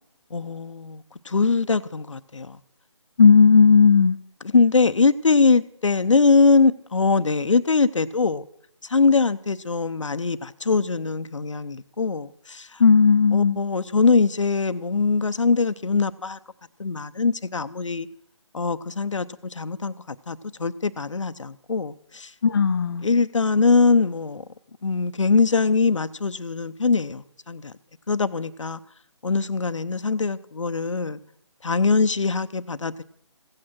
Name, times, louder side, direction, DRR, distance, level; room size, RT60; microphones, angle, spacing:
voice 1, 0.3-2.6 4.5-8.4 8.9-12.8 13.3-16.4 16.8-18.1 18.5-22.3 23.0-24.4 24.8-27.7 28.1-28.8 29.2-31.2 31.6-33.0, left 4 dB, 90° left, 0.8 m, -22 dB
voice 2, 3.2-4.2 12.8-13.6 22.4-23.0, left 5 dB, 50° left, 0.6 m, -15 dB
16.0 x 8.8 x 6.1 m
figure-of-eight pair, 160°, 15 cm